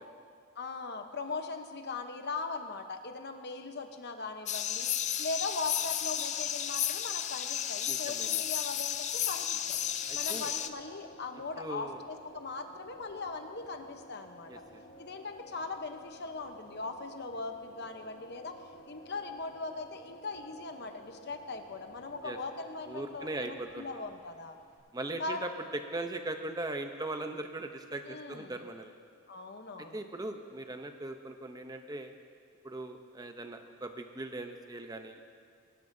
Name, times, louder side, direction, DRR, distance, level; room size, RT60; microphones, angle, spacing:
voice 1, 0.6-4.9 5.2-9.8 10.1-14.5 15.0-18.5 18.8-24.6 25.2-25.4 28.0-28.6 29.3-30.0, left 3 dB, 50° left, 6 dB, 0.9 m, -40 dB
sound 1, 4.5-10.7, left 10 dB, 35° left, 0.4 m, -33 dB
voice 2, 7.9-8.4 10.1-10.5 11.6-12.0 14.5-14.6 22.2-22.4 22.9-23.9 24.9-25.5 25.9-29.0 29.8-32.1 32.6-35.2, right 2 dB, 20° right, 6 dB, 0.7 m, -39 dB
sound 2, 8.8-24.8, equal, 90° left, 3.8 m, -54 dB
22.5 x 12.5 x 2.7 m, 2.2 s
head